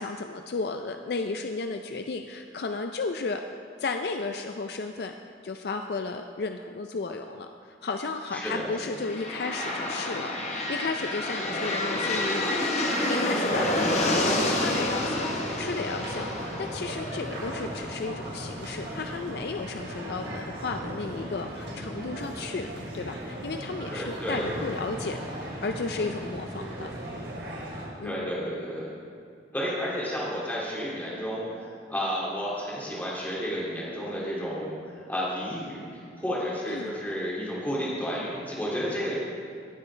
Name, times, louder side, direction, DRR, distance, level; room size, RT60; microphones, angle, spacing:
voice 1, 0.0-3.4 3.8-5.1 5.4-12.6 13.1-26.9 28.0-28.3 36.7-37.0, left 3 dB, 65° left, 6 dB, 0.4 m, -34 dB
voice 2, 8.3-8.7 11.4-11.6 23.9-24.6 28.0-28.9 29.5-39.2, equal, 10° left, -6 dB, 2.4 m, -32 dB
sound 1, 8.9-18.7, left 1 dB, 40° left, 1.0 m, -29 dB
sound 2, 13.5-27.9, right 1 dB, 80° right, 3.0 m, -37 dB
18.0 x 8.5 x 3.3 m, 2.4 s
head